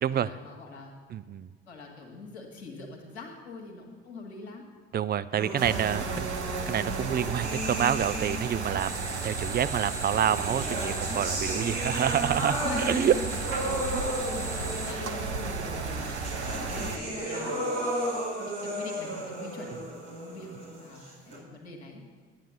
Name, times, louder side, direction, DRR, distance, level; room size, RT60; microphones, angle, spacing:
voice 1, 0.1-0.9 1.7-4.6 5.5-5.7 6.0-6.4 12.6-16.3 16.6-17.6 18.4-19.8 20.2-20.5 20.8-22.0, left 3 dB, 75° left, 1 dB, 1.8 m, -42 dB
voice 2, 1.1-1.5 4.9-6.3 6.7-13.2 13.9-14.0, right 9 dB, 30° right, 13 dB, 0.5 m, -28 dB
sound 1, 5.4-8.8 9.8-21.4, right 1 dB, 55° right, 4.5 m, -35 dB
sound 2, 5.6-17.0, right 4 dB, 80° right, 0.9 m, -34 dB
sound 3, 8.8-14.9, right 2 dB, 10° right, 1.2 m, -38 dB
11.5 x 9.0 x 7.1 m, 1.5 s
figure-of-eight pair, 45°, 33 cm